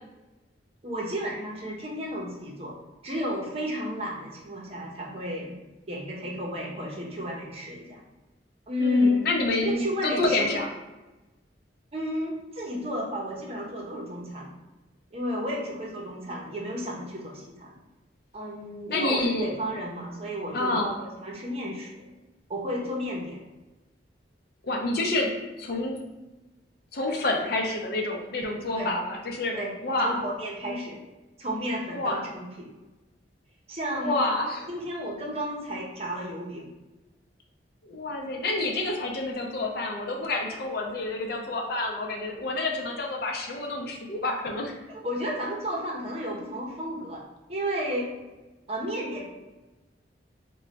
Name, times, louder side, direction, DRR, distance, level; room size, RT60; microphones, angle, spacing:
voice 1, 0.8-2.8 3.0-5.6 5.9-8.0 8.7-9.2 9.6-10.5 11.9-14.5 15.1-17.8 18.3-22.1 22.5-23.4 28.7-28.9 29.5-29.7 30.0-31.0 31.4-32.7 33.7-34.2 34.7-36.7 44.9-47.2 47.5-48.1 48.7-49.2, left 1 dB, 35° right, -2 dB, 0.7 m, -32 dB
voice 2, 8.8-10.7 18.9-19.5 20.5-20.9 24.6-25.3 25.6-26.0 26.9-30.2 31.9-32.2 33.9-34.7 37.8-44.7, left 2 dB, 55° left, 1 dB, 0.6 m, -28 dB
3.1 x 2.2 x 3.9 m, 1.1 s
head